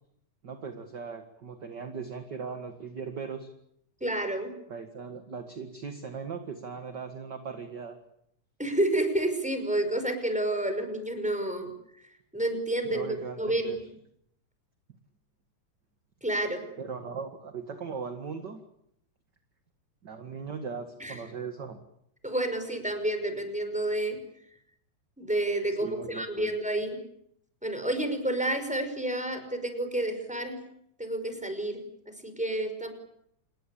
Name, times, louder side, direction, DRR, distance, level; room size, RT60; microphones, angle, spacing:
voice 1, 0.4-3.5 4.7-8.0 12.9-13.8 16.8-18.6 20.0-21.8 25.8-26.5, right 5 dB, 40° right, 7 dB, 2.2 m, -38 dB
voice 2, 4.0-4.5 8.6-11.7 12.3-13.1 13.4-13.8 16.2-16.6 21.0-21.2 22.2-24.2 25.2-27.0 27.6-30.6 31.0-31.8 32.2-32.9, right 1 dB, ahead, 7 dB, 5.4 m, -29 dB
28.0 x 21.0 x 8.7 m, 0.73 s
omnidirectional pair, 3.5 m